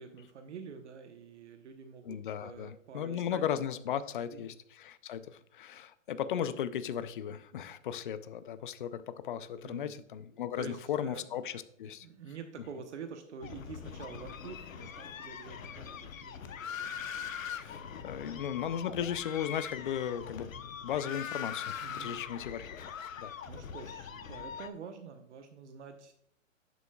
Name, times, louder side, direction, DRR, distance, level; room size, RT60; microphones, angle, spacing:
voice 1, 0.0-3.4 4.3-4.5 9.6-9.9 10.6-11.4 11.9-17.6 21.8-22.2 23.0-26.1, right 6 dB, 60° right, 6 dB, 1.0 m, -48 dB
voice 2, 2.0-12.1 17.6-22.9 23.2-23.3, left 9 dB, 40° left, 13 dB, 0.5 m, -36 dB
sound 1, 13.4-24.7, left 7 dB, 80° left, 0.9 m, -42 dB
10.5 x 7.1 x 2.3 m, 0.69 s
hypercardioid pair, 150°, 40 cm